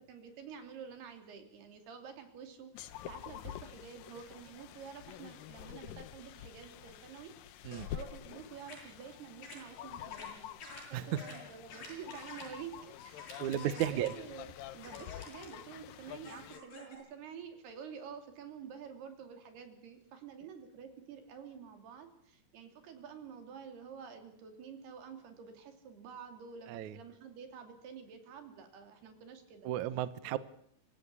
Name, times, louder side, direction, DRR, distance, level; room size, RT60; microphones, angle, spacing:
voice 1, 0.1-7.3 7.9-10.5 10.9-29.7 30.2-30.3, right 7 dB, 70° right, 6 dB, 4.7 m, -49 dB
sound 1, 2.7-16.6, left 11 dB, 70° left, 2.3 m, -48 dB
sound 2, 7.7-7.9 8.7-8.8 9.4-9.6 10.1-10.3 10.6-10.8 11.2-11.3 11.7-12.4 13.2-14.1 14.8-15.5 16.2-17.0, left 3 dB, 55° left, 9.2 m, -49 dB
voice 2, 13.4-14.1 26.7-26.9 29.6-30.4, right 12 dB, 85° right, 15 dB, 1.6 m, -33 dB
25.5 x 15.5 x 8.3 m, 0.67 s
omnidirectional pair, 4.9 m